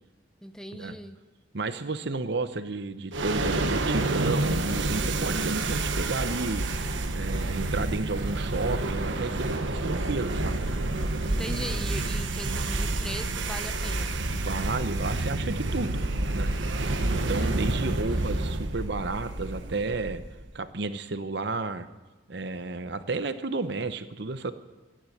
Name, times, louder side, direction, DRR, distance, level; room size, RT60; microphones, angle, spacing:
voice 1, 0.4-1.2 11.3-14.2, equal, 5° left, 8 dB, 0.8 m, -39 dB
voice 2, 1.5-6.6 7.1-10.7 14.3-16.0 16.3-16.5 17.1-20.2 20.5-21.9 22.3-24.5, right 3 dB, 65° right, 11 dB, 0.9 m, -32 dB
sound 1, 3.1-20.5, right 2 dB, 90° right, 1.2 m, -29 dB
14.0 x 10.5 x 9.4 m, 1.2 s
head